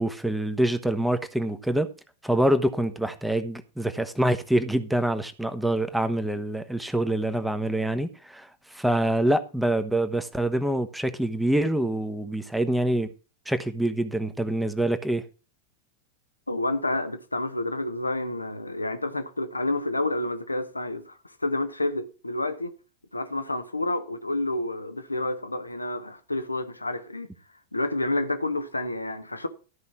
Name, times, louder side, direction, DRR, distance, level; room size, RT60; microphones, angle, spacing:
voice 1, 0.0-1.9 2.2-8.5 8.7-13.1 13.5-15.2, right 1 dB, 5° right, 1.2 m, -25 dB
voice 2, 16.5-22.7 23.1-27.3 27.7-29.5, left 2 dB, 85° left, 1.1 m, -29 dB
13.0 x 5.5 x 5.8 m
figure-of-eight pair, 90°, 0 cm